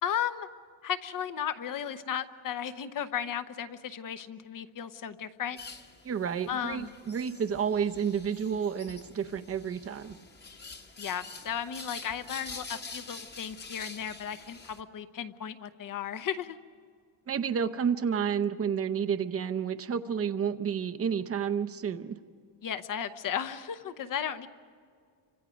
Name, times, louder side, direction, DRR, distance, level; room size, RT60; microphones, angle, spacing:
voice 1, 0.0-0.5 0.8-5.6 6.5-6.9 11.0-16.6 22.6-24.5, left 9 dB, 40° left, 11 dB, 0.9 m, -35 dB
sound 1, 5.6-14.8, left 4 dB, 20° left, 1.2 m, -46 dB
voice 2, 6.0-10.2 17.3-22.2, right 7 dB, 30° right, 8 dB, 0.7 m, -30 dB
30.0 x 25.5 x 5.1 m, 2.1 s
cardioid pair, 175°, 49 cm